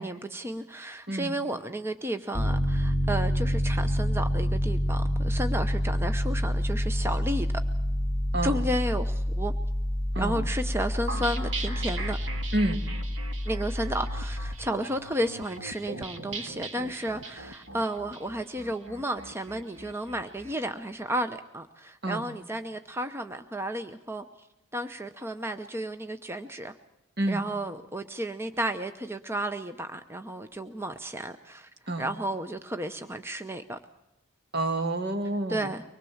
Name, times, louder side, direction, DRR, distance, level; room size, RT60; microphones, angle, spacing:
voice 1, 0.0-7.5 8.4-9.5 10.2-12.2 13.5-24.5 24.7-26.7 27.3-31.7 32.0-33.8 35.5-35.8, right 1 dB, 10° right, 8 dB, 0.7 m, -33 dB
Piano, 2.3-14.6, equal, 5° left, 2.4 m, -28 dB
sound 1, 11.1-20.5, right 3 dB, 75° right, 2.0 m, -40 dB
voice 2, 34.5-35.7, right 1 dB, 55° right, 7 dB, 1.7 m, -29 dB
24.5 x 20.5 x 7.2 m, 0.93 s
head